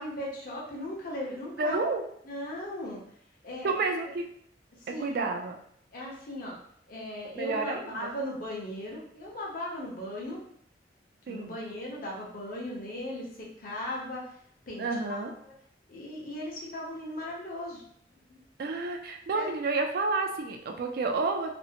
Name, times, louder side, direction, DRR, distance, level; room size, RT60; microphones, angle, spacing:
voice 1, 0.0-1.8 2.2-3.0 3.4-3.7 4.8-5.2 5.9-6.6 6.9-10.4 11.3-14.3 14.7-15.2 15.4-15.5 15.9-17.8 18.3-18.4 19.3-19.5, left 1 dB, 50° left, -3 dB, 0.8 m, -37 dB
voice 2, 1.6-2.0 3.6-4.2 5.0-5.6 7.3-8.1 11.3-11.6 14.8-15.3 18.6-21.5, right 3 dB, 55° right, 3 dB, 0.3 m, -30 dB
2.6 x 2.0 x 2.7 m, 0.66 s
head